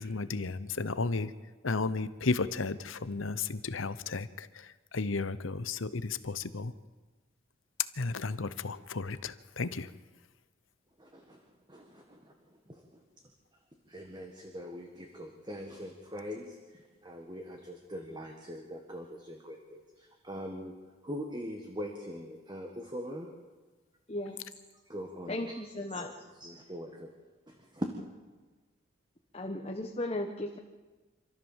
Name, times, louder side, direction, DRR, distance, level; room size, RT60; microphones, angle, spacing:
voice 1, 0.0-1.3 1.6-6.7 7.9-9.9, left 3 dB, 80° left, 14 dB, 0.9 m, -34 dB
voice 2, 11.0-11.4 11.7-13.0 13.9-20.8 21.0-23.3 24.3-24.4 24.9-25.6 26.0-27.1 27.5-27.9, equal, 20° right, 3 dB, 1.7 m, -42 dB
voice 3, 24.1-24.4 25.3-26.1 29.3-30.6, left 1 dB, 30° left, 2 dB, 1.2 m, -36 dB
26.5 x 14.0 x 7.4 m, 1.3 s
head